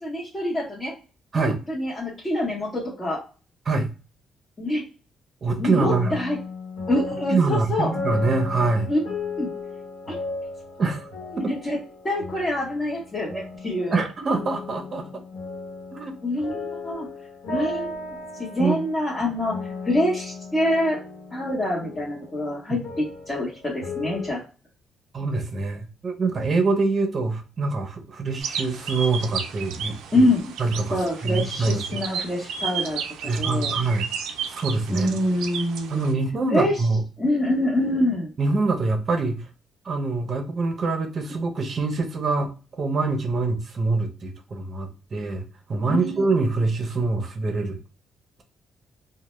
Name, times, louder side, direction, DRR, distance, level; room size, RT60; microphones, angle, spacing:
voice 1, 0.0-0.9 1.3-3.2 4.6-4.8 5.6-6.4 6.9-7.9 8.9-9.0 9.4-9.5 11.3-11.8 12.0-14.0 16.2-17.1 17.5-18.0 18.4-19.6 19.8-21.0 21.3-24.4 30.1-30.5 30.9-33.7 34.9-36.0 36.5-36.8 37.2-38.3 45.9-46.2, left 1 dB, 25° left, -6 dB, 0.8 m, -25 dB
voice 2, 5.4-6.1 7.3-8.9 10.8-11.1 11.4-11.5 13.9-15.2 15.9-16.1 18.6-18.8 22.7-22.8 25.1-30.3 30.6-32.0 33.2-34.1 34.5-35.1 35.9-37.0 38.4-39.5 39.8-47.8, right 3 dB, 45° right, 5 dB, 0.6 m, -25 dB
sound 1, 5.7-24.3, left 3 dB, 85° left, 1.0 m, -36 dB
sound 2, 28.4-36.1, right 7 dB, 90° right, 0.3 m, -33 dB
2.1 x 2.0 x 3.0 m, 0.35 s
cardioid pair, 90°, 0 cm